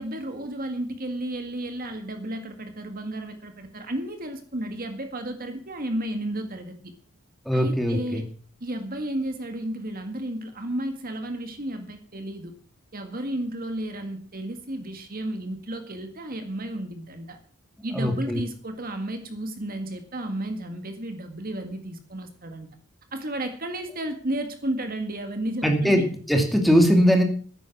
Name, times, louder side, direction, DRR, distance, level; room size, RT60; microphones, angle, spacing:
voice 1, 0.0-6.9 7.5-8.3 8.6-12.5 12.9-17.4 17.8-22.7 23.1-26.1, right 1 dB, 40° right, 1.9 m, -33 dB
voice 2, 7.5-8.2 17.9-18.4 25.6-27.2, equal, ahead, 2.4 m, -21 dB
14.0 x 10.5 x 6.0 m
head